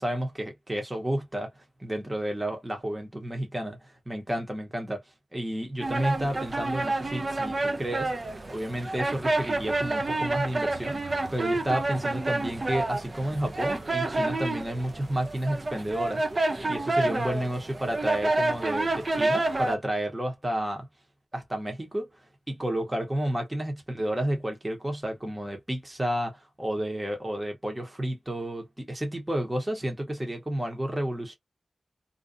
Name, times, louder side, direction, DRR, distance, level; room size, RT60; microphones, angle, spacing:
voice 1, 0.0-5.0 5.3-8.1 8.5-11.0 11.3-20.9 21.3-22.1 22.5-31.3, right 1 dB, 15° right, 0.9 m, -31 dB
sound 1, 5.8-19.8, right 2 dB, 35° right, 0.4 m, -29 dB
2.5 x 2.2 x 2.4 m
wide cardioid pair, 120°, 0 cm